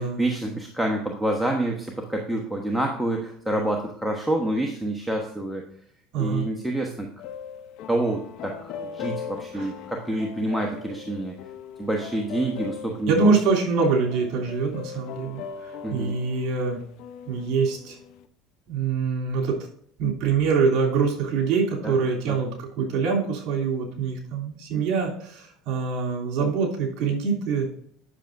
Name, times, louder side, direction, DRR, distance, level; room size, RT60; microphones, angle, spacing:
voice 1, 0.0-5.6 6.2-7.1 7.9-11.3 11.8-13.3 15.8-16.2 21.8-21.9 22.2-22.4, right 1 dB, ahead, 0 dB, 1.1 m, -27 dB
voice 2, 6.1-6.5 9.5-9.7 13.1-16.8 17.3-18.0 18.7-19.6 20.0-27.7, right 5 dB, 60° right, -1 dB, 3.0 m, -24 dB
sound 1, 7.2-18.3, left 7 dB, 65° left, 0.7 m, -39 dB
10.0 x 6.6 x 2.6 m, 0.64 s
supercardioid pair, 110°, 0 cm